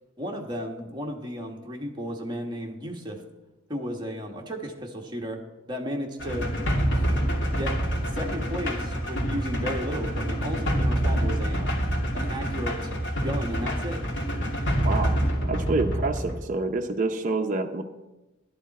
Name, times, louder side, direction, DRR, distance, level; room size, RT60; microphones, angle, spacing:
voice 1, 0.2-3.2 3.7-5.4 5.7-6.5 6.9-7.1 7.5-7.8 8.1-11.9 12.1-12.9 13.2-14.0, equal, 20° right, 1 dB, 1.5 m, -34 dB
sound 1, 6.2-16.4, equal, 60° left, 2.5 m, -27 dB
voice 2, 14.8-15.1 15.4-17.8, right 3 dB, 40° right, 3 dB, 0.7 m, -27 dB
12.0 x 11.5 x 4.2 m, 1.0 s
head